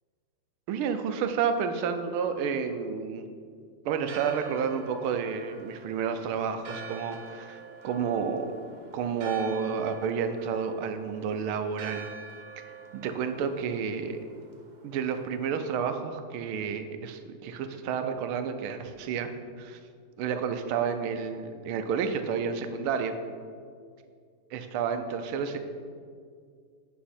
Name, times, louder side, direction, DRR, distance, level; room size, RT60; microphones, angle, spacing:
voice 1, 0.7-3.3 3.8-8.5 8.9-12.1 12.6-12.7 12.9-14.2 14.8-19.3 19.6-19.8 20.2-23.2 24.5-25.7, right 6 dB, 90° right, 8 dB, 1.5 m, -30 dB
Church bell, 3.9-15.4, right 5 dB, 65° right, 1.6 m, -46 dB
9.4 x 6.0 x 4.3 m, 2.2 s
omnidirectional pair, 2.3 m